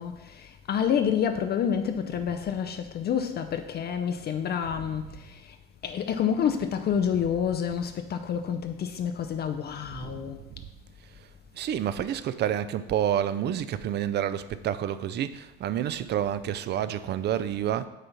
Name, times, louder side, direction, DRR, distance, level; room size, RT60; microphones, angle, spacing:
voice 1, 0.0-5.4 5.8-10.4, left 8 dB, 35° left, 0.5 m, -28 dB
voice 2, 9.9-10.7 11.5-17.9, right 10 dB, 35° right, 0.5 m, -29 dB
8.2 x 3.8 x 5.7 m
figure-of-eight pair, 60°, 30 cm